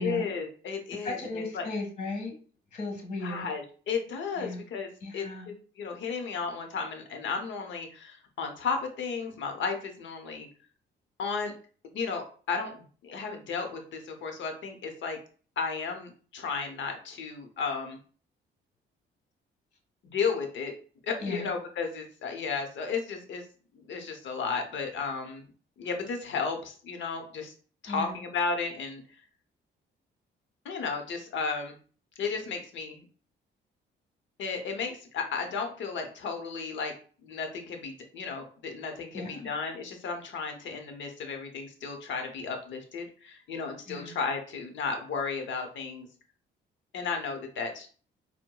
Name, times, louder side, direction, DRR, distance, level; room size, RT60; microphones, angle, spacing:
voice 1, 0.0-1.2 1.5-1.7 3.2-10.5 11.2-11.5 11.9-15.2 15.6-18.0 20.0-20.7 21.0-23.5 23.7-25.4 25.8-27.5 27.8-29.0 30.6-31.8 32.2-33.0 34.4-36.9 37.2-46.1 46.9-47.9, left 5 dB, 70° left, 4 dB, 0.8 m, -34 dB
voice 2, 0.9-2.3 2.7-3.5 4.4-4.6 5.0-5.5 21.2-21.5 27.9-28.2 39.1-39.5 43.9-44.1, left 2 dB, 40° left, 3 dB, 1.6 m, -36 dB
4.5 x 2.1 x 2.2 m, 0.41 s
cardioid pair, 90°, 20 cm